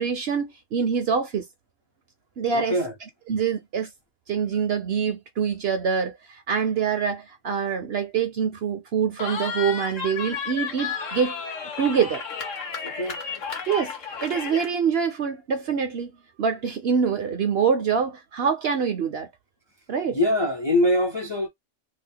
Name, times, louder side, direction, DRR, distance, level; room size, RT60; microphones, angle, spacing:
voice 1, 0.0-1.4 2.4-2.8 3.3-3.9 4.3-11.4 11.8-12.2 13.7-13.9 14.2-16.1 16.4-19.3 19.9-20.2, right 6 dB, 60° right, 0.7 m, -25 dB
voice 2, 2.5-2.9 12.8-13.2 20.1-21.5, left 1 dB, 30° left, 0.5 m, -23 dB
Cheering, 9.2-14.7, left 6 dB, 70° left, 1.3 m, -32 dB
2.8 x 2.2 x 3.6 m
omnidirectional pair, 1.4 m